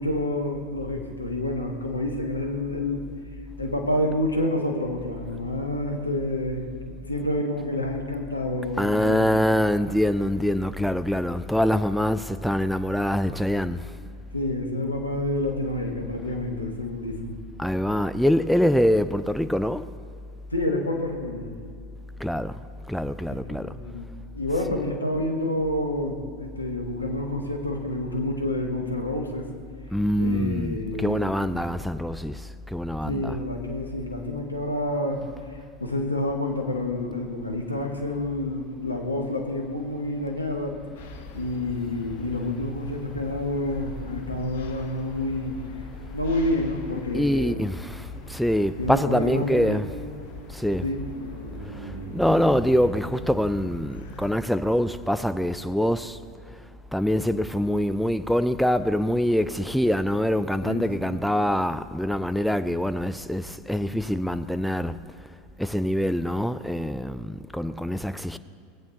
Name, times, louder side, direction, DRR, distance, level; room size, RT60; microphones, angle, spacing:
voice 1, 0.0-3.1 3.6-6.6 7.1-9.3 14.3-17.3 20.5-21.5 23.5-24.1 24.3-29.5 30.2-31.5 33.0-40.8 41.3-45.6 46.1-47.6 48.8-49.8 50.8-51.1 60.6-60.8 61.1-61.2, left 1 dB, 90° left, 1.1 m, -28 dB
voice 2, 8.8-14.0 17.6-19.9 22.2-23.8 24.7-24.9 29.9-33.4 47.1-50.0 50.5-51.0 51.6-65.3 65.6-68.4, equal, ahead, 0.3 m, -25 dB
sound 1, 40.9-54.3, left 4 dB, 65° left, 0.9 m, -42 dB
sound 2, 48.8-58.0, right 2 dB, 60° right, 1.2 m, -44 dB
16.0 x 8.6 x 2.8 m
figure-of-eight pair, 80°, 0 cm